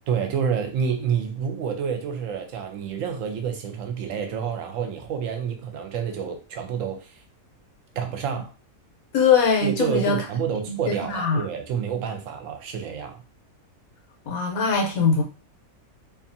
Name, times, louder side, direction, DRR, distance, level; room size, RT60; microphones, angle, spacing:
voice 1, 0.1-7.2 8.0-8.5 9.6-13.2, right 7 dB, 70° right, 0.9 m, -28 dB
voice 2, 9.1-10.2 10.7-11.4 14.3-15.2, left 5 dB, 75° left, 1.2 m, -21 dB
2.7 x 2.4 x 2.6 m
omnidirectional pair, 1.5 m